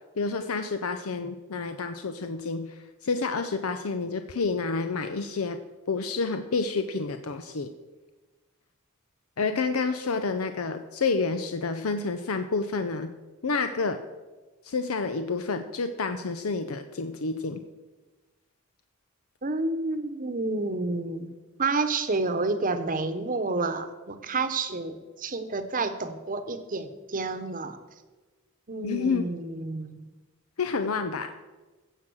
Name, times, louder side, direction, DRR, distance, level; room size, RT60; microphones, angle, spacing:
voice 1, 0.2-5.6 5.9-7.7 9.4-13.1 13.4-14.0 14.6-17.6 28.8-29.3 30.6-31.3, left 4 dB, 85° left, 8 dB, 0.7 m, -29 dB
voice 2, 19.4-21.3 21.6-27.8 28.7-30.0, right 3 dB, 40° right, 10 dB, 1.0 m, -29 dB
16.0 x 7.4 x 6.3 m, 1.2 s
head